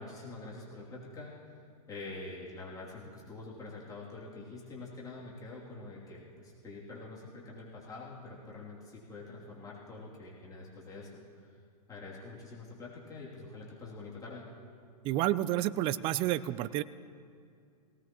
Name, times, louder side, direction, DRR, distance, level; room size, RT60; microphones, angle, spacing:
voice 1, 0.0-1.3 1.9-11.5 11.9-14.5, left 3 dB, 15° left, -5 dB, 2.8 m, -46 dB
voice 2, 15.0-16.8, right 14 dB, 25° right, 16 dB, 0.4 m, -30 dB
18.5 x 18.0 x 3.0 m, 2.3 s
hypercardioid pair, 120°, 20 cm